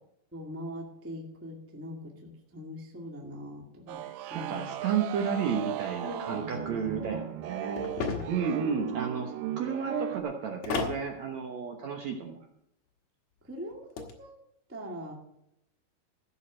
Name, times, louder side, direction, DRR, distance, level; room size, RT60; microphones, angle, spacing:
voice 1, 0.3-4.8 6.0-7.3 8.0-8.4 13.4-13.9 14.2-14.3 14.7-15.1, equal, 10° right, 0 dB, 0.8 m, -42 dB
sound 1, 3.9-10.2, right 12 dB, 85° right, 2.6 m, -37 dB
voice 2, 4.0-7.9 8.3-12.4, right 6 dB, 65° right, 2 dB, 1.9 m, -32 dB
sound 2, 7.8-8.5 10.6-11.0 13.7-14.1, left 4 dB, 55° left, 2.4 m, -33 dB
15.5 x 6.6 x 6.2 m, 0.79 s
omnidirectional pair, 4.4 m